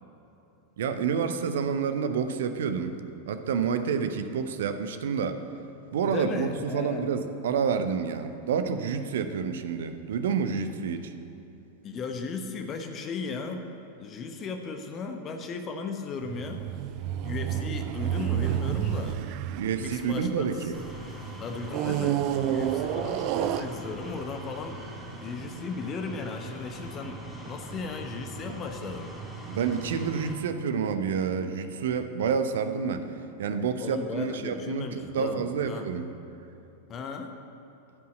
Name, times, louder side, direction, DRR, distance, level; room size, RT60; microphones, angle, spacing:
voice 1, 0.8-2.9 3.3-5.4 5.9-6.5 6.7-11.1 19.5-20.7 29.5-33.0 33.4-34.9 35.1-36.1, right 6 dB, 60° right, 9 dB, 0.8 m, -28 dB
voice 2, 6.0-7.1 11.8-13.6 14.0-16.7 17.2-19.2 19.8-20.7 21.4-24.8 25.2-29.1 33.8-35.9 36.9-37.3, left 4 dB, 30° left, 5 dB, 0.9 m, -36 dB
sound 1, 16.2-20.9 21.7-24.2 24.9-25.0, right 11 dB, 45° right, 0.4 m, -30 dB
sound 2, 20.7-30.3, right 2 dB, 5° right, 2.0 m, -41 dB
13.0 x 5.7 x 7.7 m, 3.0 s
figure-of-eight pair, 90°, 0 cm